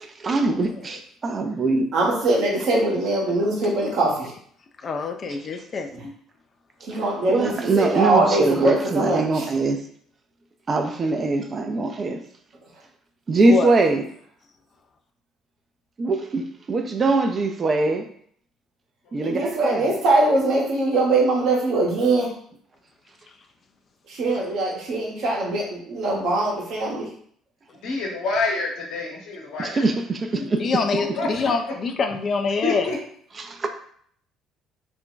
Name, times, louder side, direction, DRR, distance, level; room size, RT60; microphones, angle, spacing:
voice 1, 0.2-1.9 7.3-9.8 10.7-12.2 13.3-14.0 16.0-18.1 19.1-20.0 29.6-30.7 33.4-33.7, right 3 dB, 35° right, 0.4 m, -22 dB
voice 2, 1.9-4.3 6.9-9.5 19.2-22.3 24.1-27.1, right 2 dB, 65° right, 0.9 m, -22 dB
voice 3, 4.8-6.1 13.4-13.8 30.4-32.9, left 4 dB, 45° left, 0.4 m, -25 dB
voice 4, 27.8-29.8 30.9-31.3 32.6-33.0, left 3 dB, 70° left, 1.0 m, -27 dB
2.5 x 2.2 x 3.7 m
hypercardioid pair, 55°, 0 cm